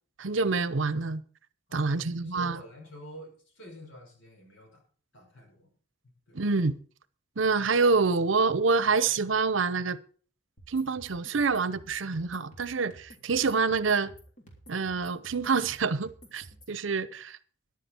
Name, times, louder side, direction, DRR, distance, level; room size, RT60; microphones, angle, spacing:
voice 1, 0.2-1.2 1.7-2.6 6.3-6.8 7.4-10.0 10.7-14.1 14.7-17.4, right 4 dB, 80° right, 0.7 m, -27 dB
voice 2, 1.7-4.8 5.1-5.7 6.3-6.4, right 1 dB, 80° left, 5.6 m, -48 dB
sound 1, 10.6-16.8, right 1 dB, 40° left, 3.3 m, -52 dB
13.5 x 11.0 x 4.4 m
head